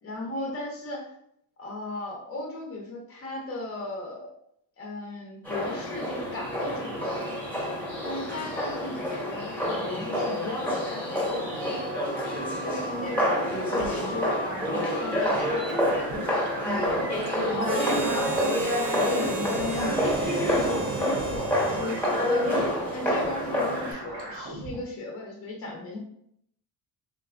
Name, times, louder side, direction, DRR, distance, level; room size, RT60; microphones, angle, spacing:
voice 1, 0.0-1.1 1.6-4.3 4.8-7.5 8.0-10.9 12.6-16.2 16.6-17.0 17.5-22.5 22.9-26.0, left 2 dB, 35° left, 0 dB, 0.7 m, -35 dB
sound 1, 5.5-23.9, equal, 5° left, 0.9 m, -28 dB
sound 2, 11.5-24.8, right 1 dB, 90° right, 0.9 m, -39 dB
Harmonica, 17.6-23.1, right 4 dB, 45° right, 0.7 m, -34 dB
3.4 x 2.6 x 2.4 m, 0.71 s
cardioid pair, 135°, 43 cm